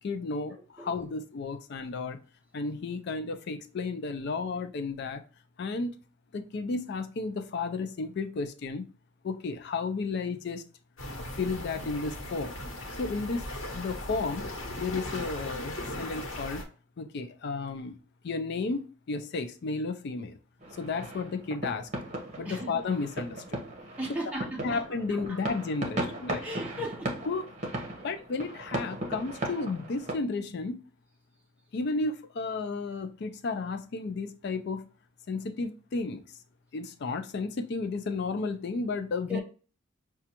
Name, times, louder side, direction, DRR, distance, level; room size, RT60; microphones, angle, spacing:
voice 1, 0.0-2.2 2.5-5.2 5.6-5.9 6.3-8.9 9.2-10.6 11.3-12.6 13.0-14.5 14.8-16.7 17.0-18.0 18.2-20.4 20.8-21.9 22.4-23.6 24.6-26.5 27.2-27.5 28.0-30.8 31.7-34.9 35.3-36.2 36.7-39.4, left 4 dB, 55° left, 0.4 m, -33 dB
sound 1, 11.0-16.6, left 1 dB, 90° left, 1.0 m, -38 dB
sound 2, 20.6-30.1, right 1 dB, 35° right, 0.9 m, -37 dB
voice 2, 24.0-24.8 26.4-27.1 39.3-39.4, equal, 5° right, 0.6 m, -35 dB
5.9 x 2.3 x 2.8 m
head